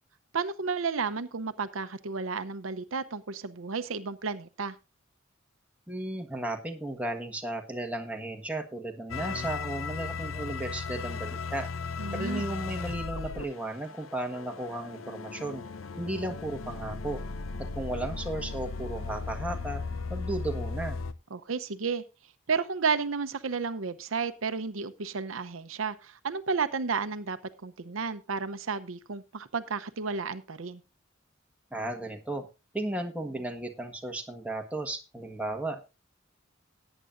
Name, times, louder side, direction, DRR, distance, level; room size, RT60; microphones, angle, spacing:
voice 1, 0.3-4.7 12.0-12.5 21.3-22.0 22.5-30.8, right 5 dB, 85° right, 11 dB, 0.8 m, -32 dB
voice 2, 5.9-11.7 12.1-15.7 16.0-17.2 17.7-19.8 20.1-21.0 31.7-32.5 32.7-36.0, right 1 dB, 5° right, 3 dB, 1.5 m, -35 dB
sound 1, 9.1-21.1, left 4 dB, 90° left, 0.7 m, -36 dB
17.5 x 9.0 x 2.5 m, 0.28 s
head